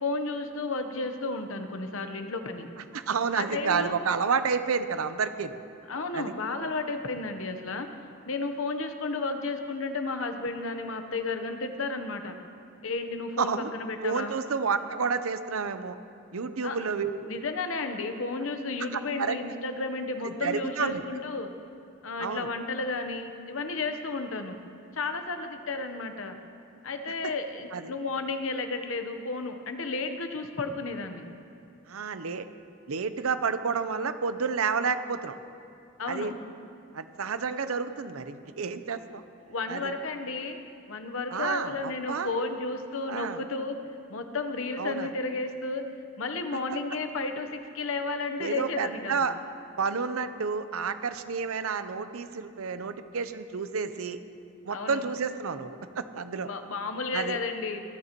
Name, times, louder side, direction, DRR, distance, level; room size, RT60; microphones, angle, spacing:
voice 1, 0.0-2.7 3.3-4.0 5.9-7.9 8.3-12.4 12.8-14.3 16.6-16.8 17.3-21.5 22.0-24.6 24.9-26.4 26.8-31.3 36.0-36.4 39.1-39.2 39.5-40.6 40.9-43.8 44.1-45.9 46.2-49.2 54.7-55.0 56.5-57.8, left 3 dB, 70° left, 7 dB, 0.9 m, -32 dB
voice 2, 2.9-5.6 6.1-6.2 13.4-13.7 14.0-16.0 16.3-17.3 18.9-19.4 20.2-21.0 22.2-22.5 27.7-27.9 31.9-32.5 32.9-35.4 36.1-36.3 36.9-39.2 39.7-39.9 41.3-42.3 43.1-43.4 44.8-45.1 48.4-49.4 49.8-54.2 54.6-56.5 57.1-57.4, right 5 dB, 85° right, 11 dB, 0.6 m, -30 dB
26.5 x 9.7 x 3.0 m, 2.5 s
head